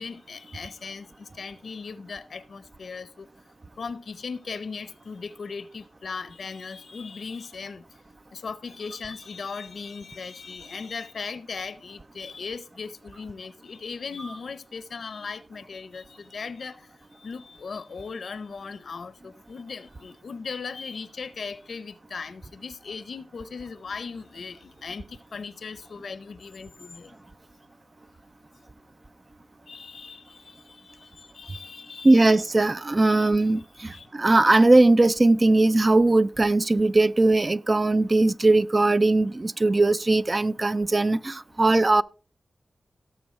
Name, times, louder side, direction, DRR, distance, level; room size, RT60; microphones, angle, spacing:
voice 1, 0.0-3.3 3.8-8.0 8.3-27.2 29.7-32.4 33.1-33.3 33.8-34.1, left 5 dB, 80° left, 0.7 m, -38 dB
voice 2, 32.0-42.0, right 2 dB, 35° right, 0.4 m, -20 dB
17.5 x 7.0 x 3.2 m
wide cardioid pair, 75°, 0 cm